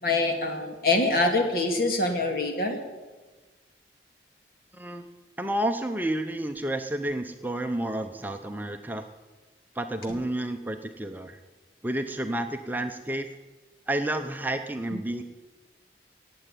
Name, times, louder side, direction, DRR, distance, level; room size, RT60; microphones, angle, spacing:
voice 1, 0.0-2.8, left 2 dB, 55° left, 3 dB, 2.4 m, -25 dB
voice 2, 4.7-5.1 5.4-9.1 9.7-11.4 11.8-13.3 13.9-15.2, right 1 dB, 10° right, 6 dB, 0.7 m, -30 dB
18.0 x 7.9 x 9.1 m, 1.2 s
head